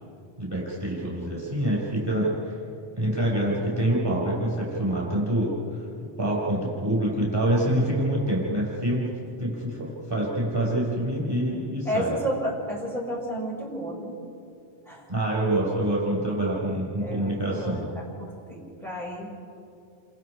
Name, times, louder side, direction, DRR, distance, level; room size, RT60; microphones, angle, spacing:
voice 1, 0.4-2.6 3.0-5.8 6.2-9.1 9.4-12.1 15.1-17.9, right 1 dB, 20° right, -4 dB, 5.8 m, -26 dB
voice 2, 11.9-14.2 14.9-15.0 17.0-19.3, equal, ahead, -3 dB, 6.1 m, -32 dB
29.5 x 26.0 x 4.9 m, 2.4 s
omnidirectional pair, 1.2 m